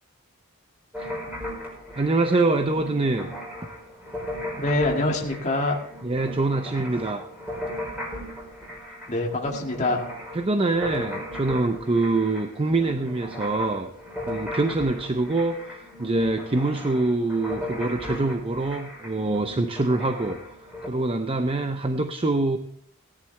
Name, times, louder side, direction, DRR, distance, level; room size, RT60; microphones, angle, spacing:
sound 1, 0.9-20.9, left 1 dB, 5° right, 4.8 m, -37 dB
voice 1, 2.0-3.3 6.0-7.2 10.3-13.9 14.3-20.4 20.9-22.6, right 2 dB, 25° right, 7 dB, 0.6 m, -24 dB
voice 2, 4.5-5.8 9.1-10.0, left 2 dB, 30° left, 0 dB, 1.8 m, -25 dB
17.5 x 11.0 x 3.3 m, 0.65 s
head